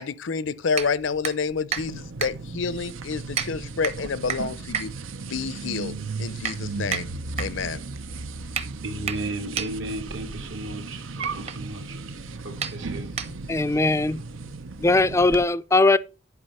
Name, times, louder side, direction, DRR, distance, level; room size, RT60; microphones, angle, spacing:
voice 1, 0.0-4.9 5.3-7.1 7.4-7.8, left 5 dB, 70° left, 0.6 m, -29 dB
sound 1, 0.7-13.7, right 6 dB, 35° right, 0.9 m, -35 dB
sound 2, 1.8-15.4, right 3 dB, 85° right, 0.8 m, -36 dB
voice 2, 8.8-12.0 12.4-13.3, right 2 dB, 70° right, 2.1 m, -35 dB
voice 3, 13.5-14.2 14.8-16.0, left 2 dB, 15° left, 0.4 m, -20 dB
11.0 x 4.9 x 5.4 m
head